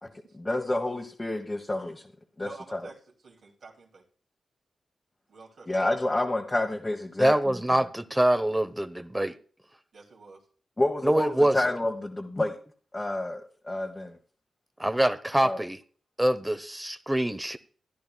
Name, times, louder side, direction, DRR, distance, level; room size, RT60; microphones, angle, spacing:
voice 1, 0.0-2.0 2.4-2.9 5.7-7.5 10.8-12.6 12.9-14.2 15.4-15.6, left 2 dB, 25° left, 1.3 m, -29 dB
voice 2, 2.4-4.0 5.3-5.7 9.9-10.4, right 4 dB, 70° right, 2.7 m, -48 dB
voice 3, 7.2-9.3 11.0-11.6 14.8-15.8 16.2-17.6, right 1 dB, 10° right, 0.9 m, -25 dB
14.5 x 10.5 x 2.3 m
supercardioid pair, 40°, 0 cm